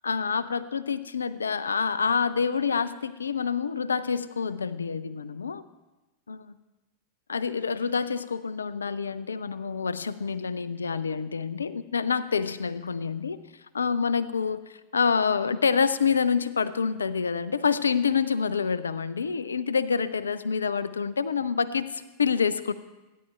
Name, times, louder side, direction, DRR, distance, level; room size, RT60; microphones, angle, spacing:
voice 1, 0.0-5.6 6.3-6.5 7.3-13.4 13.7-14.6 14.9-22.7, left 6 dB, 75° left, 16 dB, 0.4 m, -27 dB
16.5 x 10.0 x 2.4 m, 1.1 s
figure-of-eight pair, 90°, 0 cm